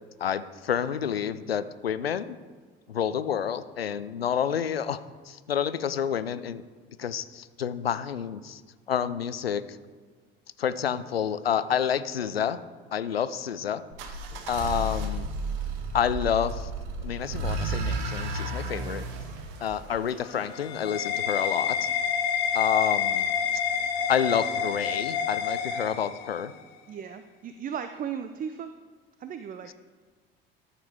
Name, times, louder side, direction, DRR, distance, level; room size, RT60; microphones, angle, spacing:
voice 1, 0.2-2.4 2.9-5.0 5.2-6.6 7.0-8.6 8.9-9.8 10.6-12.6 12.9-13.8 14.5-15.3 15.9-16.7 17.0-19.0 19.6-21.9 22.5-23.3 24.1-26.5, left 8 dB, 85° left, 14 dB, 0.5 m, -29 dB
sound 1, 13.9-20.8, right 2 dB, 60° right, 1.3 m, -33 dB
sound 2, 20.1-26.6, left 7 dB, 60° left, 1.1 m, -28 dB
voice 2, 26.9-28.7 29.2-29.7, right 7 dB, 30° right, 10 dB, 0.5 m, -36 dB
13.5 x 7.4 x 3.5 m, 1.5 s
figure-of-eight pair, 60°, 29 cm